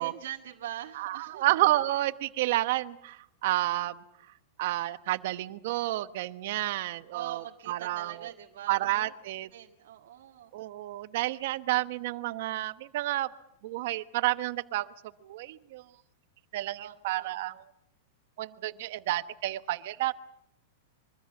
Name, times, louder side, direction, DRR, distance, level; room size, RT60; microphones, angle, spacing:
voice 1, 0.0-1.5 7.1-9.0 9.5-10.5 16.8-17.4, right 11 dB, 65° right, 1 dB, 1.8 m, -43 dB
voice 2, 0.9-3.9 4.6-8.1 8.7-9.5 10.5-13.3 13.6-14.9 15.2-15.8 16.5-17.6 18.4-20.1, right 16 dB, 45° right, 13 dB, 1.0 m, -30 dB
24.5 x 24.0 x 7.1 m, 0.79 s
supercardioid pair, 175°, 0 cm